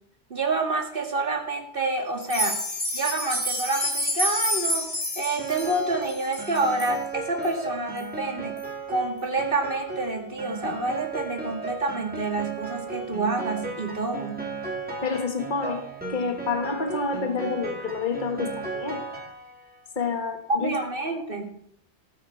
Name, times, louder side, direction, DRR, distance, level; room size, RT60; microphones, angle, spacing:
voice 1, 0.3-2.6 2.9-8.6 8.9-14.5 20.6-21.6, right 2 dB, 50° right, 3 dB, 2.3 m, -28 dB
sound 1, 2.2-7.0 7.4-7.5 8.0-8.1 8.6-8.7, equal, 25° left, 2.2 m, -29 dB
Piano, 5.4-19.8, right 3 dB, 10° right, 2.8 m, -36 dB
voice 2, 15.0-19.0 20.0-20.7 21.0-21.2, left 4 dB, 45° left, 4 dB, 1.8 m, -29 dB
19.0 x 9.2 x 4.6 m, 0.69 s
omnidirectional pair, 1.2 m